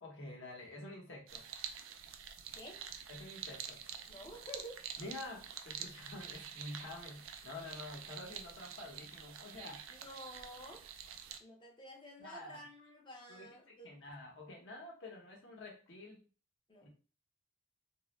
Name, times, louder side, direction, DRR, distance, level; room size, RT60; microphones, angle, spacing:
voice 1, 0.0-1.4 3.1-3.8 5.0-9.8 12.2-12.6 13.3-16.2 16.8-16.9, left 2 dB, 60° left, 0.9 m, -48 dB
sound 1, 1.3-11.4, right 8 dB, 70° right, 0.3 m, -48 dB
voice 2, 2.5-2.9 4.1-4.9 9.9-10.9 11.4-14.0 16.7-16.9, equal, 20° left, 0.5 m, -51 dB
2.4 x 2.0 x 3.0 m
head